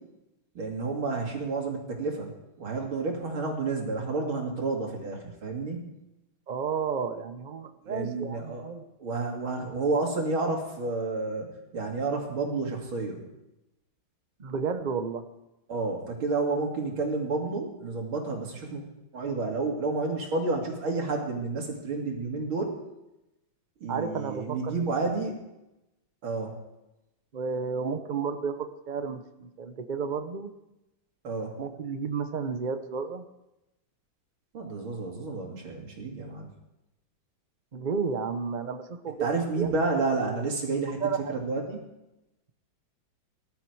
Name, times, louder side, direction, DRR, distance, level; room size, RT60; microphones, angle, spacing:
voice 1, 0.5-2.3 2.6-5.8 7.8-8.6 9.0-11.5 11.7-13.2 15.7-18.8 19.1-22.7 23.8-25.4 26.2-26.6 31.2-31.5 34.5-36.5 39.2-41.0 41.3-41.8, right 3 dB, 80° right, 1 dB, 3.4 m, -30 dB
voice 2, 6.5-8.9 14.4-15.2 23.9-24.7 27.3-30.5 31.6-33.2 37.7-39.7 40.9-41.4, right 5 dB, 40° right, 9 dB, 0.6 m, -32 dB
19.5 x 12.0 x 4.7 m, 0.93 s
omnidirectional pair, 2.2 m